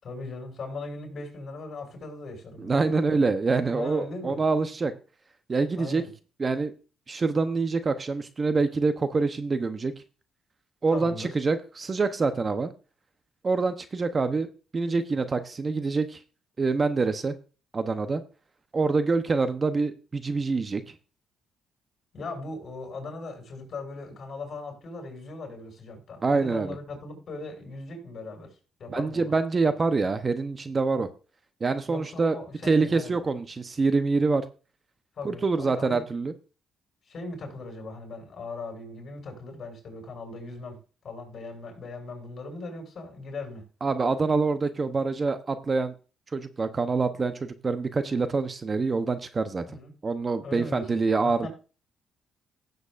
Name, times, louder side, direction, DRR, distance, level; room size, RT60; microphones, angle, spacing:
voice 1, 0.0-3.0 3.7-4.4 5.8-6.1 10.9-11.4 22.1-29.3 31.9-33.2 35.2-36.0 37.1-40.8 41.0-43.6 49.7-49.9 50.4-51.5, left 2 dB, 50° left, 6.2 m, -39 dB
voice 2, 2.6-4.9 5.5-6.0 6.4-6.7 7.1-9.9 10.8-12.7 13.4-14.5 14.7-16.2 16.6-17.3 17.7-18.2 18.7-20.9 26.2-26.8 28.9-31.1 31.6-32.3 32.6-34.4 35.2-36.3 43.8-45.9 46.3-49.6 50.0-51.5, right 4 dB, 35° right, 0.8 m, -25 dB
16.0 x 7.9 x 2.5 m
cardioid pair, 90°, 0 cm